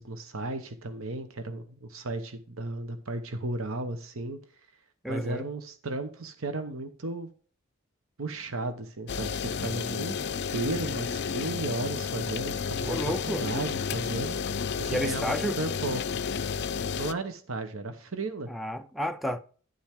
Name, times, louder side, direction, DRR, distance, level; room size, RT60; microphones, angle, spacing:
voice 1, 0.0-4.4 5.1-7.3 8.2-10.1 10.5-13.0 13.3-14.4 14.8-16.0 17.0-18.5, right 2 dB, 85° right, 1.0 m, -34 dB
voice 2, 5.0-5.5 12.8-13.5 14.9-15.6 18.5-19.4, equal, ahead, 0.5 m, -31 dB
sound 1, 9.1-17.1, left 6 dB, 55° left, 0.5 m, -31 dB
10.5 x 7.5 x 3.6 m
head